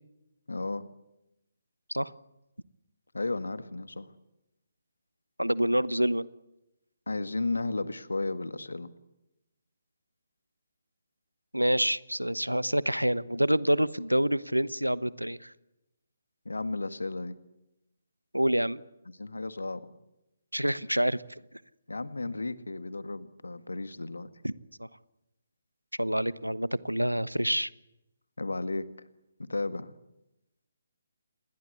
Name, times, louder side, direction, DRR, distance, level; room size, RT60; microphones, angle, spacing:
voice 1, 0.5-0.9 3.1-4.1 7.1-8.9 16.5-17.4 19.2-19.9 21.9-24.3 28.4-28.9 29.4-29.9, left 2 dB, 70° left, 13 dB, 1.7 m, -33 dB
voice 2, 5.4-6.3 11.5-15.5 18.3-18.8 20.5-21.2 24.4-24.5 24.8-24.9 26.0-27.7, equal, 90° right, 19 dB, 1.0 m, -27 dB
28.0 x 21.0 x 8.4 m, 0.92 s
figure-of-eight pair, 140°, 0 cm